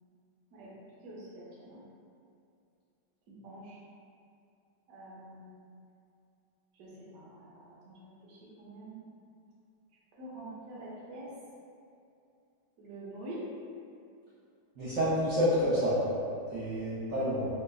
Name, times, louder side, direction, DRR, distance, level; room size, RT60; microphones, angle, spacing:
voice 1, 1.0-1.8 3.3-3.8 4.9-5.7 6.7-9.0 10.2-11.3 12.8-13.5, right 1 dB, 60° right, -7 dB, 1.0 m, -46 dB
voice 2, 14.8-16.0 16.5-17.5, equal, 75° right, -11 dB, 0.7 m, -28 dB
4.5 x 2.0 x 2.3 m, 2.5 s
omnidirectional pair, 2.1 m